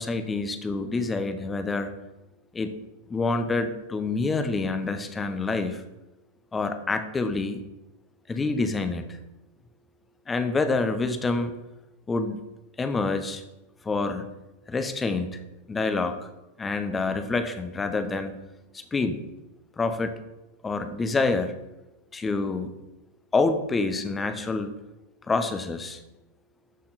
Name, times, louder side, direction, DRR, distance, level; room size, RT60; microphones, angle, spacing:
voice 1, 0.0-1.9 2.5-2.7 3.1-5.8 6.5-7.6 8.3-9.1 10.3-11.6 12.1-12.4 12.8-13.4 13.8-14.3 14.7-15.4 15.7-16.3 16.6-18.3 18.7-19.2 19.8-20.2 20.6-21.5 22.1-22.7 23.3-24.7 25.3-26.0, left 3 dB, 15° left, 8 dB, 1.0 m, -27 dB
13.0 x 5.8 x 4.3 m, 0.99 s
figure-of-eight pair, 90°, 0 cm